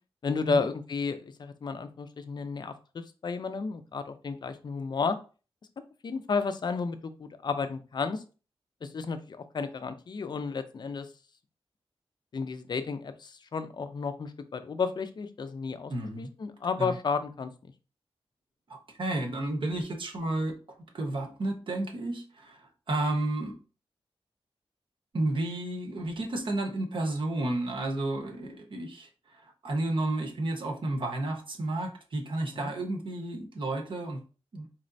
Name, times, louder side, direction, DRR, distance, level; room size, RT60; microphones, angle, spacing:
voice 1, 0.2-5.2 6.0-8.2 8.8-11.1 12.3-17.5, left 5 dB, 45° left, 10 dB, 0.4 m, -32 dB
voice 2, 15.9-16.3 16.8-16.9 18.7-20.6 20.9-23.5 25.1-34.2 34.5-34.7, right 2 dB, 55° right, 3 dB, 0.8 m, -32 dB
4.0 x 3.1 x 2.6 m, 0.35 s
wide cardioid pair, 145°, 10 cm